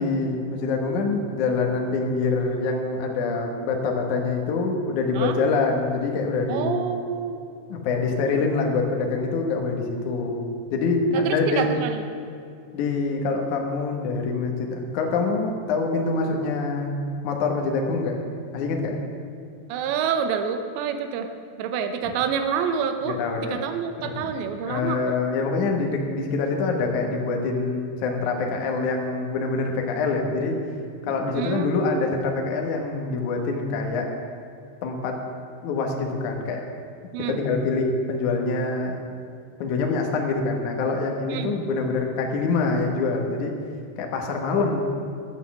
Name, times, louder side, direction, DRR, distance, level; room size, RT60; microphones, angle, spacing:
voice 1, 0.0-6.7 7.7-11.7 12.7-17.0 17.2-18.2 18.5-19.0 23.1-23.6 24.0-24.3 24.6-30.6 31.0-34.1 34.8-35.2 35.6-36.7 37.3-39.0 39.6-43.5 44.0-44.8, left 3 dB, 85° left, 2 dB, 1.7 m, -25 dB
voice 2, 6.5-7.4 11.1-12.0 19.7-21.3 21.6-25.2 31.3-32.0 37.1-37.4 41.3-41.5, right 7 dB, 75° right, 7 dB, 2.8 m, -27 dB
12.0 x 8.4 x 7.1 m, 2.4 s
omnidirectional pair, 5.6 m